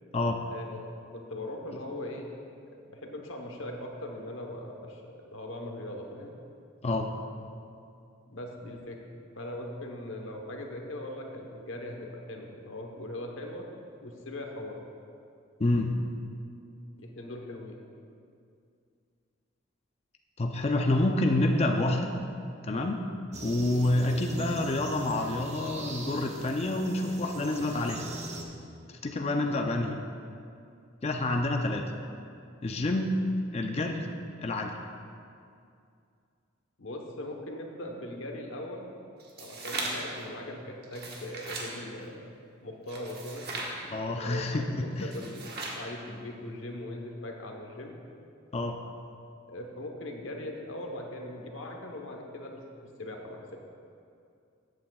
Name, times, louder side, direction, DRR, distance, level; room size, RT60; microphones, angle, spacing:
voice 1, 0.5-2.3 2.7-5.0 5.3-6.3 8.3-9.0 9.4-13.7 14.0-14.8 17.0-17.7 29.4-29.6 36.8-38.9 39.4-42.3 42.6-43.5 43.9-45.4 45.7-47.9 49.5-53.6, left 1 dB, 75° left, 2 dB, 1.1 m, -40 dB
voice 2, 15.6-16.0 20.4-22.1 22.6-23.0 23.4-28.0 29.0-30.0 31.0-31.8 32.6-33.1 33.5-34.1 34.4-34.7 43.9-45.1 48.5-48.7, left 2 dB, 30° left, 3 dB, 0.5 m, -28 dB
sound 1, 23.3-28.4, right 1 dB, 35° right, 0.9 m, -41 dB
sound 2, 39.2-40.2 40.8-41.7 42.9-43.7 45.0-45.8, right 2 dB, 55° right, 1.3 m, -37 dB
14.0 x 8.6 x 2.3 m, 2.4 s
head